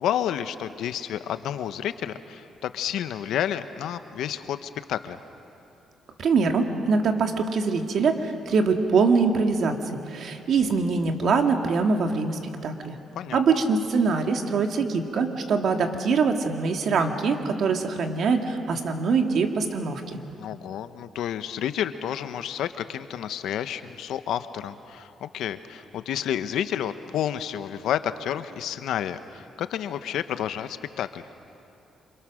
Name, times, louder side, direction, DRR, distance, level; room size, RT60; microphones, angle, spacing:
voice 1, 0.0-5.2 13.2-13.4 20.4-31.2, left 10 dB, 80° left, 11 dB, 1.0 m, -30 dB
voice 2, 6.2-13.0 13.3-20.2, right 4 dB, 60° right, 4 dB, 2.1 m, -23 dB
28.0 x 26.5 x 6.4 m, 2.7 s
cardioid pair, 90°, 0 cm